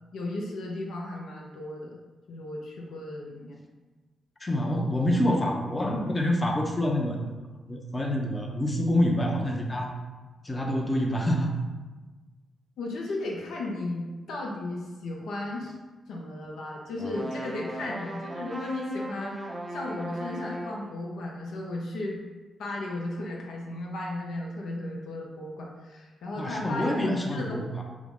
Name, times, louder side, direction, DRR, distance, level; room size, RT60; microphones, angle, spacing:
voice 1, 0.1-2.0 2.3-3.6 12.8-15.7 16.1-22.2 22.6-27.6, left 2 dB, 80° left, -2 dB, 0.5 m, -35 dB
voice 2, 4.4-7.4 7.7-9.9 10.4-11.5 26.4-27.8, left 1 dB, 30° left, 1 dB, 0.6 m, -27 dB
sound 1, 17.0-20.9, right 1 dB, 30° right, 0.5 m, -37 dB
3.5 x 2.0 x 3.5 m, 1.3 s
supercardioid pair, 45°, 0 cm